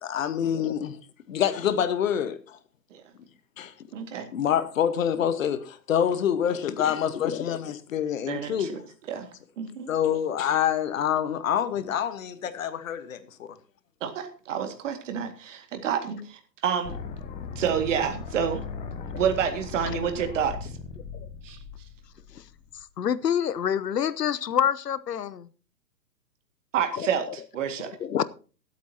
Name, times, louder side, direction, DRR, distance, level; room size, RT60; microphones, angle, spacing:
voice 1, 0.0-1.0 1.3-2.6 3.6-3.7 4.3-8.7 9.9-13.5, left 9 dB, 50° left, 1.4 m, -26 dB
voice 2, 3.9-4.3 8.3-8.8 9.1-9.3 9.6-9.9 14.0-17.0 17.6-18.6 19.1-20.7 21.4-21.6 26.7-28.0, right 8 dB, 45° right, 2.2 m, -29 dB
voice 3, 7.1-7.6 22.3-22.4 23.0-25.5 26.9-27.1 28.0-28.2, left 9 dB, 70° left, 0.9 m, -27 dB
sound 1, 16.8-22.8, left 5 dB, 15° left, 0.9 m, -38 dB
22.5 x 8.5 x 2.9 m
figure-of-eight pair, 125°, 50 cm